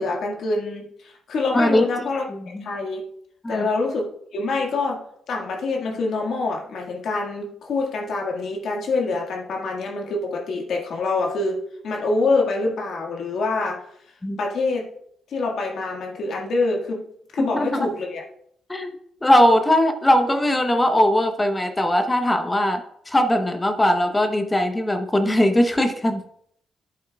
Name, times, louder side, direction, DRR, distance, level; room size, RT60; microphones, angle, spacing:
voice 1, 0.0-3.0 3.5-5.0 5.3-13.8 14.4-14.9 15.3-17.0 17.3-18.2, left 3 dB, 70° left, 1 dB, 1.7 m, -25 dB
voice 2, 1.5-1.9 2.5-2.6 3.4-3.7 14.2-14.4 17.4-17.9 18.7-18.9 19.2-22.8 23.1-26.2, left 1 dB, 15° left, 6 dB, 0.8 m, -20 dB
11.0 x 8.4 x 2.3 m, 0.69 s
cardioid pair, 90°, 0 cm